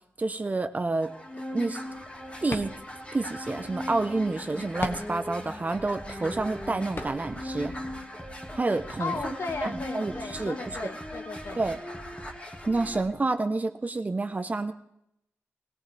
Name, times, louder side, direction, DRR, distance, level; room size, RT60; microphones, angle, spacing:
voice 1, 0.2-1.1 1.5-1.8 2.4-2.8 3.1-7.7 8.5-9.1 9.6-10.8 11.6-11.8 12.7-14.7, right 3 dB, 30° right, 8 dB, 1.0 m, -29 dB
sound 1, 1.0-13.0, left 1 dB, 25° left, 3.0 m, -39 dB
sound 2, 1.9-7.8, left 2 dB, 50° left, 1.7 m, -42 dB
Bass drum, 5.7-13.1, equal, ahead, 2.4 m, -45 dB
voice 2, 9.0-11.6, left 4 dB, 65° left, 5 dB, 1.7 m, -35 dB
20.5 x 17.5 x 3.5 m, 0.78 s
wide cardioid pair, 90°, 5 cm